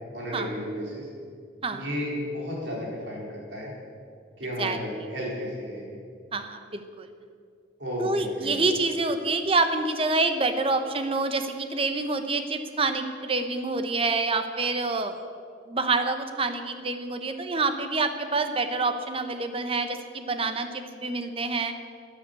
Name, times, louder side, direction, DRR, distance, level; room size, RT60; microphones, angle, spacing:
voice 1, 0.1-1.1 1.7-3.7 4.4-6.0 7.8-8.7, equal, 65° right, -3 dB, 4.4 m, -33 dB
voice 2, 6.3-7.1 8.0-15.2 15.7-21.7, right 3 dB, 30° right, 8 dB, 0.9 m, -27 dB
11.0 x 10.0 x 8.3 m, 2.3 s
head